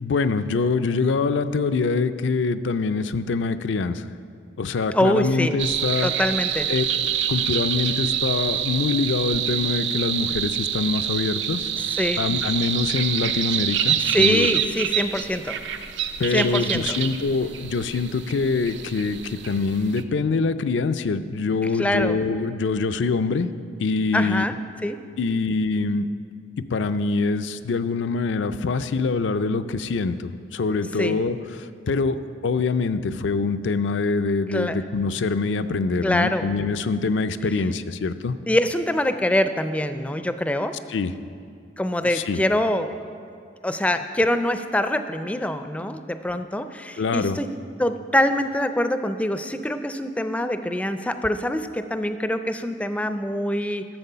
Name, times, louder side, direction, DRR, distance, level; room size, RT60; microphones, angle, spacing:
voice 1, 0.0-4.0 4.6-6.1 6.7-6.8 7.3-11.7 12.2-14.5 16.2-23.5 23.8-24.4 25.2-26.1 26.7-32.2 32.4-38.4 40.9-41.1 42.0-42.4 47.0-47.4, left 4 dB, 80° left, 11 dB, 0.4 m, -24 dB
voice 2, 4.9-5.5 6.0-6.7 11.9-12.2 14.0-15.6 16.3-17.0 21.8-22.2 24.1-24.5 24.8-25.0 31.0-31.2 34.5-34.8 36.0-36.5 38.5-40.7 41.8-42.9 43.6-47.5 47.8-53.8, left 1 dB, 5° left, 9 dB, 0.4 m, -24 dB
sound 1, 5.6-20.0, right 9 dB, 70° right, 0.6 m, -26 dB
12.0 x 7.4 x 5.6 m, 2.3 s
head